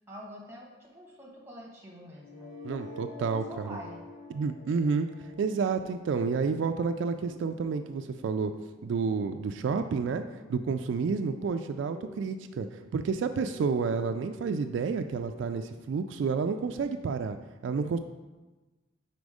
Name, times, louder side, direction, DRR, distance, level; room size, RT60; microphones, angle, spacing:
voice 1, 0.1-2.6 3.2-4.0, equal, 15° right, -2 dB, 1.2 m, -46 dB
sound 1, 2.1-8.1, left 2 dB, 80° left, 2.0 m, -47 dB
voice 2, 2.6-3.8 4.3-5.1 5.4-8.5 8.8-10.2 10.5-12.7 12.9-17.4 17.6-18.0, right 5 dB, 75° right, 8 dB, 0.3 m, -30 dB
sound 2, 7.1-16.1, equal, 35° left, 0.9 m, -50 dB
5.2 x 4.3 x 4.8 m, 1.2 s
head